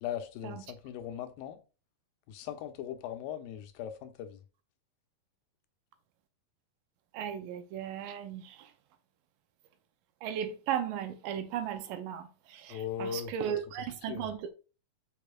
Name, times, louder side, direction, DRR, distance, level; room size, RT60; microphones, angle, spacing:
voice 1, 0.0-1.6 2.3-4.4 12.7-13.6 14.0-14.3, left 9 dB, 80° left, 2.5 m, -39 dB
voice 2, 7.1-8.7 10.2-14.5, right 9 dB, 75° right, 2.2 m, -36 dB
6.8 x 5.8 x 2.4 m
omnidirectional pair, 4.1 m